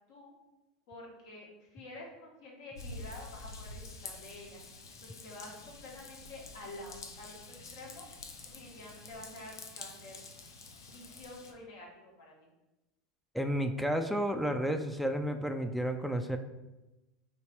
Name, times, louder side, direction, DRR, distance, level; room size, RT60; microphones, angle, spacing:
voice 1, 0.9-4.6 5.0-8.1 8.5-10.2 10.9-12.5, left 1 dB, 70° left, -2 dB, 1.3 m, -49 dB
Raindrop / Vehicle horn car horn honking / Trickle dribble, 2.7-11.5, left 3 dB, 85° left, 0.5 m, -48 dB
voice 2, 13.3-16.4, equal, ahead, 6 dB, 0.3 m, -31 dB
3.0 x 2.9 x 4.4 m, 1.0 s
hypercardioid pair, 85°, 2 cm